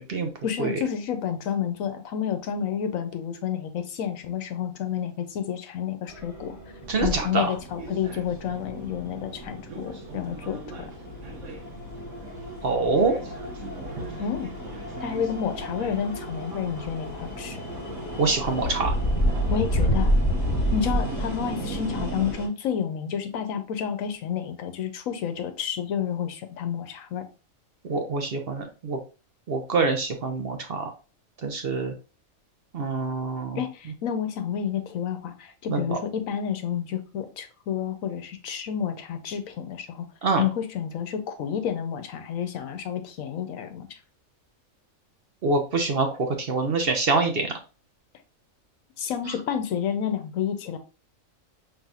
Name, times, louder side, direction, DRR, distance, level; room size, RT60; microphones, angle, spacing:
voice 1, 0.4-6.6 7.0-10.9 14.2-14.5 15.0-17.6 19.5-20.1 20.7-27.3 33.5-40.1 40.4-44.0 49.0-50.8, left 8 dB, 75° left, 1.1 m, -30 dB
sound 1, 6.1-22.5, equal, 15° left, 1.4 m, -31 dB
sound 2, 6.8-22.3, right 2 dB, 70° right, 1.2 m, -38 dB
voice 2, 6.9-7.5 12.6-13.2 18.2-19.0 27.9-29.0 29.5-30.9 31.4-31.9 32.7-33.6 35.7-36.0 40.2-40.4 45.4-47.5, right 3 dB, 50° right, 0.9 m, -25 dB
5.6 x 3.4 x 2.4 m
omnidirectional pair, 1.4 m